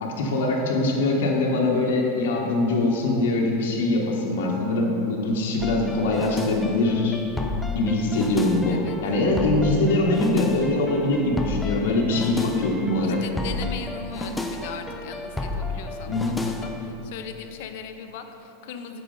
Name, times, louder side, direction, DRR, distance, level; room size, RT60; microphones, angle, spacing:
voice 1, 0.0-7.2 7.7-13.2 16.1-16.3, left 2 dB, 80° left, -1 dB, 1.4 m, -23 dB
sound 1, 5.6-16.9, left 2 dB, 5° left, 0.4 m, -32 dB
voice 2, 13.0-19.0, left 7 dB, 60° left, 6 dB, 0.6 m, -38 dB
9.0 x 6.4 x 3.9 m, 3.0 s
supercardioid pair, 155°, 0 cm